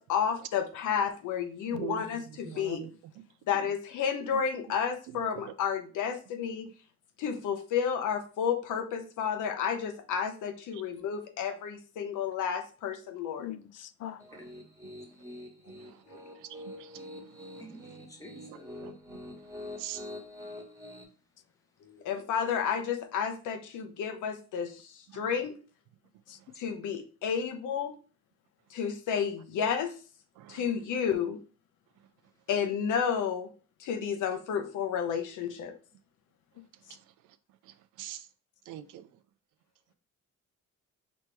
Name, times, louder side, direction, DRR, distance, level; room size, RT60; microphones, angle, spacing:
voice 1, 0.0-2.9 3.5-6.7 7.2-13.5 21.8-25.5 26.6-27.9 28.7-29.9 30.5-31.4 32.5-33.5 33.8-35.7, left 7 dB, 80° left, 0.9 m, -31 dB
voice 2, 1.7-2.0 2.4-3.2 5.1-5.5 10.7-10.8 14.3-14.4 15.7-16.0 16.4-17.7 18.8-19.2 19.8-20.1 25.1-25.4 30.4-30.6 36.9-37.0 37.6-38.3 38.7-39.2, right 13 dB, 85° right, 0.5 m, -44 dB
voice 3, 13.4-14.2 26.3-26.4 36.6-37.0, left 12 dB, 55° left, 0.5 m, -43 dB
Piano, 14.2-21.0, left 1 dB, 10° right, 1.3 m, -45 dB
voice 4, 17.6-18.7, equal, 10° left, 1.1 m, -50 dB
4.3 x 3.1 x 3.3 m
cardioid pair, 90°, 30 cm